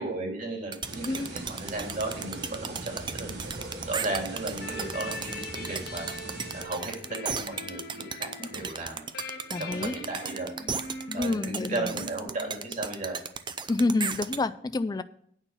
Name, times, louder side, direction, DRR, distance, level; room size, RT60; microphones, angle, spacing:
voice 1, 0.0-3.4 3.8-6.1 6.5-9.0 9.6-10.5 11.1-13.2, right 2 dB, 50° right, 0 dB, 2.6 m, -35 dB
sound 1, 0.7-14.4, right 6 dB, 25° right, 0.5 m, -35 dB
sound 2, 0.8-6.6, right 2 dB, 80° right, 2.5 m, -41 dB
sound 3, 4.6-13.0, left 2 dB, 60° left, 1.4 m, -42 dB
voice 2, 9.5-10.0 11.2-12.0 13.7-15.0, left 2 dB, 25° left, 13 dB, 0.3 m, -28 dB
9.1 x 5.7 x 8.0 m, 0.64 s
head